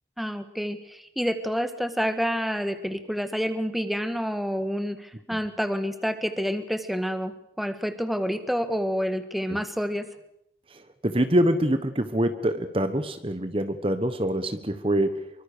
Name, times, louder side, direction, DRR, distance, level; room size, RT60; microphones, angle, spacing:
voice 1, 0.2-10.0, equal, ahead, 9 dB, 1.7 m, -28 dB
voice 2, 11.0-15.2, right 1 dB, 30° right, 10 dB, 1.2 m, -25 dB
26.5 x 24.0 x 6.8 m, 0.77 s
head